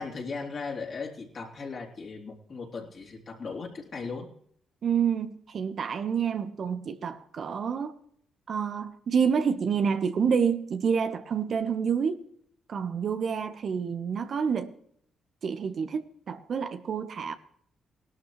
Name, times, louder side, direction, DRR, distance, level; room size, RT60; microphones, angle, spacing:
voice 1, 0.0-4.3, left 4 dB, 50° left, 3.5 m, -37 dB
voice 2, 4.8-7.9 8.5-12.2 12.7-14.7 15.4-17.3, right 6 dB, 60° right, 1.1 m, -28 dB
18.0 x 12.5 x 3.2 m
supercardioid pair, 55°, 0 cm